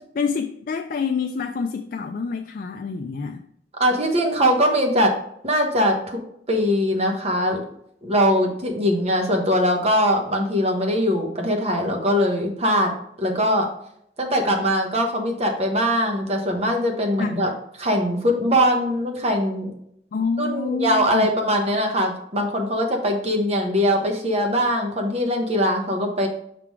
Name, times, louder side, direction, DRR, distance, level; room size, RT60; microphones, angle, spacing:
voice 1, 0.1-3.4 17.2-17.5 20.1-21.3, left 5 dB, 50° left, 5 dB, 0.3 m, -27 dB
voice 2, 3.8-5.1 5.4-6.2 6.5-7.6 8.0-12.9 13.2-13.7 14.2-17.5 17.8-19.7 20.4-26.3, equal, 35° right, 3 dB, 1.1 m, -21 dB
5.8 x 3.8 x 4.7 m, 0.72 s
head